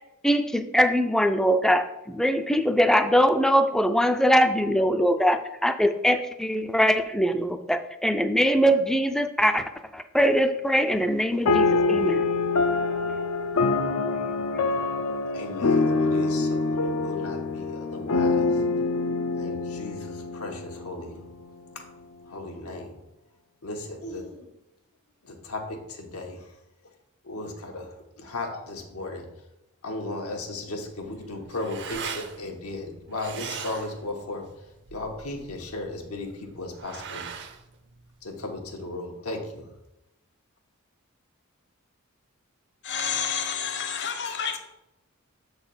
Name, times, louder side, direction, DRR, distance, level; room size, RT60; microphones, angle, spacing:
voice 1, 0.2-9.6 9.9-12.3, equal, ahead, 0.3 m, -22 dB
sound 1, 11.5-21.2, left 3 dB, 70° left, 0.5 m, -25 dB
voice 2, 15.3-18.6 19.4-21.2 21.7-21.8 22.3-23.0 23.6-24.5 25.2-26.6 27.2-29.4 29.8-37.3 38.2-39.7, left 2 dB, 90° left, 1.2 m, -36 dB
sound 2, 30.9-38.8, right 6 dB, 55° right, 0.7 m, -41 dB
voice 3, 42.8-44.6, left 7 dB, 55° left, 0.9 m, -29 dB
6.8 x 4.0 x 5.6 m
head